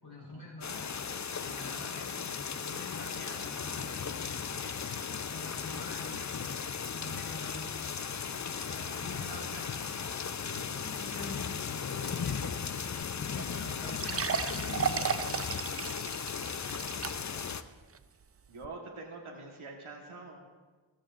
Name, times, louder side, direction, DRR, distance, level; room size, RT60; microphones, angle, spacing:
voice 1, 0.0-0.9 1.3-4.8 5.2-6.5 6.9-8.0 8.3-11.5 11.9-12.5 13.2-14.6 14.9-15.3 17.1-17.4, left 2 dB, 60° left, -4 dB, 4.5 m, -47 dB
sound 1, 0.6-17.6, left 6 dB, 40° left, 0.5 m, -36 dB
sound 2, 13.0-13.1 13.4-13.5 13.9-17.5 17.9-18.0 18.6-18.7, right 7 dB, 35° right, 0.4 m, -34 dB
voice 2, 18.5-20.4, right 3 dB, 90° right, -1 dB, 1.5 m, -46 dB
15.0 x 14.0 x 2.5 m, 1.3 s
wide cardioid pair, 60°, 48 cm